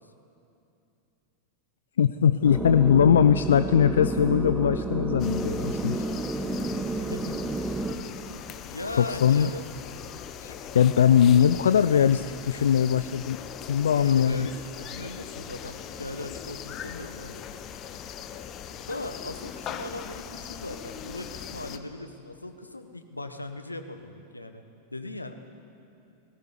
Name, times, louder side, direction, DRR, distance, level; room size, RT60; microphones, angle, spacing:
voice 1, 2.0-6.0 9.0-9.5 10.4-13.4 13.7-14.5, left 8 dB, 65° left, 13 dB, 0.5 m, -21 dB
sound 1, 2.4-7.9, right 2 dB, 10° right, 1.4 m, -30 dB
sound 2, 5.2-21.8, left 9 dB, 35° left, 1.2 m, -40 dB
voice 2, 7.0-7.7 8.7-9.6 13.9-17.4 18.9-24.6 24.9-25.4, left 2 dB, 85° left, 8 dB, 1.4 m, -38 dB
19.5 x 16.5 x 9.7 m, 2.7 s
figure-of-eight pair, 90°, 0 cm